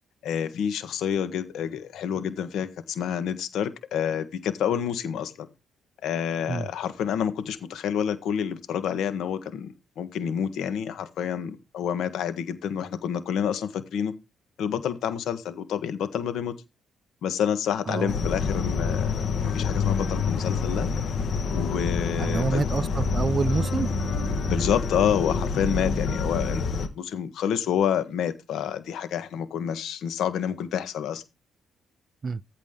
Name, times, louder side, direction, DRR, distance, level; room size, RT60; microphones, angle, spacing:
voice 1, 0.2-5.5 6.0-14.1 14.6-16.5 17.2-20.9 21.5-22.7 24.5-26.6 26.9-31.2, left 8 dB, 75° left, 1.4 m, -28 dB
sound 1, 18.1-26.9, left 4 dB, 55° left, 1.5 m, -27 dB
voice 2, 22.2-23.9 32.2-32.4, right 4 dB, 40° right, 0.5 m, -27 dB
14.5 x 4.9 x 3.8 m
cardioid pair, 90°, 0 cm